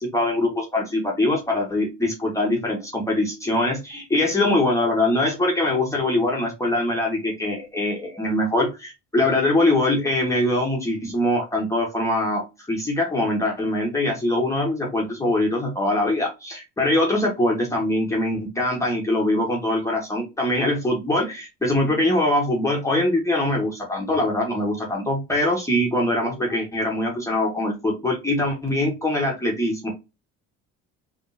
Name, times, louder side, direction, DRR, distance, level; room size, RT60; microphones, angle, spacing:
voice 1, 0.0-29.9, left 1 dB, 10° left, -2 dB, 1.3 m, -23 dB
3.6 x 3.3 x 2.6 m, 0.25 s
cardioid pair, 125°, 29 cm